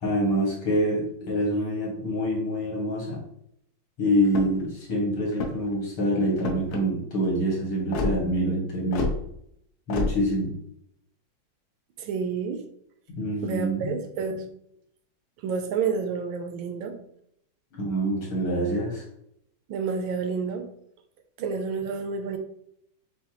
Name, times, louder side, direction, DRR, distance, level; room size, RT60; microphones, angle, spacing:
voice 1, 0.0-3.2 4.0-9.1 9.9-10.5 13.1-13.9 17.7-19.0, equal, 85° left, -4 dB, 2.6 m, -26 dB
sound 1, 4.2-4.7 5.3-5.8 6.4-6.8 7.9-8.1 8.9-9.2 9.9-10.1, left 3 dB, 60° left, 1.1 m, -28 dB
voice 2, 12.0-12.6 13.4-14.5 15.4-17.0 19.7-20.7 21.4-22.4, right 5 dB, 75° right, 6 dB, 1.4 m, -29 dB
6.9 x 2.4 x 2.9 m, 0.74 s
omnidirectional pair, 2.2 m